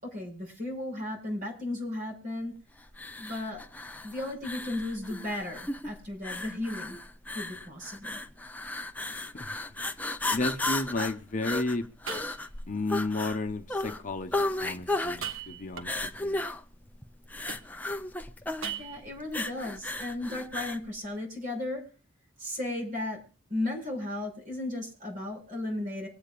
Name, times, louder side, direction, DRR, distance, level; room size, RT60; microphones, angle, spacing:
voice 1, 0.0-2.5 3.2-3.6 4.0-7.0 7.3-8.2 18.8-21.8 22.4-23.2 23.5-26.1, left 1 dB, 40° right, 6.0 m, -35 dB
sound 1, 2.9-20.9, left 2 dB, 10° left, 0.5 m, -35 dB
sound 2, 7.7-8.1 8.6-8.7 9.4-9.5 11.5-11.6 12.1-12.7 15.0-16.2 17.5-18.0 18.6-19.2, right 7 dB, 75° right, 1.4 m, -40 dB
voice 2, 10.3-11.9 12.7-16.4, left 2 dB, 40° left, 0.9 m, -33 dB
25.0 x 8.7 x 2.4 m
head